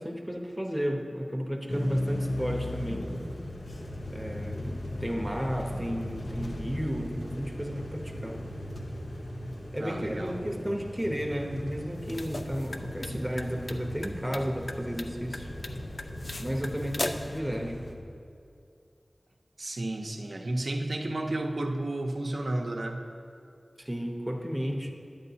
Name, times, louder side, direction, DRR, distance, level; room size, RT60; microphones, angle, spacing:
voice 1, 0.0-3.1 4.1-8.4 9.7-15.5 16.4-17.9 23.8-24.9, equal, 5° right, 1 dB, 0.8 m, -33 dB
sound 1, 1.7-17.9, left 1 dB, 75° left, 0.8 m, -37 dB
voice 2, 9.8-10.5 19.6-23.0, right 1 dB, 70° right, 2 dB, 0.6 m, -32 dB
sound 2, 11.9-17.4, left 2 dB, 60° left, 0.4 m, -39 dB
10.5 x 8.4 x 2.8 m, 2.4 s
wide cardioid pair, 60°, 0 cm